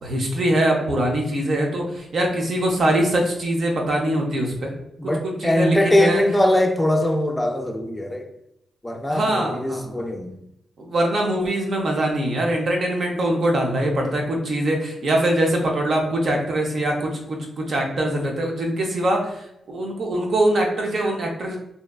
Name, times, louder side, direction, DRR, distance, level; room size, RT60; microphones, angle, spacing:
voice 1, 0.0-4.7 5.0-6.2 9.1-10.0 10.8-21.6, right 1 dB, 65° right, 0.5 m, -23 dB
voice 2, 5.0-8.3 8.8-10.3, left 1 dB, 15° left, 0.3 m, -21 dB
2.6 x 2.1 x 2.3 m
supercardioid pair, 45°, 0 cm